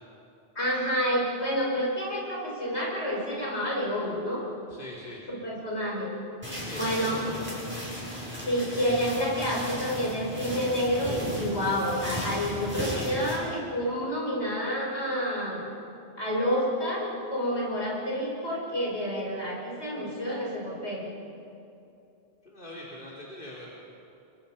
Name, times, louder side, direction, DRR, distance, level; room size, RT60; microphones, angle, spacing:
voice 1, 0.6-4.5 5.3-6.1 6.7-7.2 8.5-15.7 16.2-21.1, equal, 75° left, -3 dB, 5.8 m, -29 dB
voice 2, 4.7-5.2 6.5-7.6 22.4-23.8, left 1 dB, 50° left, -5 dB, 3.5 m, -42 dB
sound 1, 6.4-13.4, equal, 10° right, 6.7 m, -35 dB
29.5 x 23.5 x 5.7 m, 2.7 s
omnidirectional pair, 1.1 m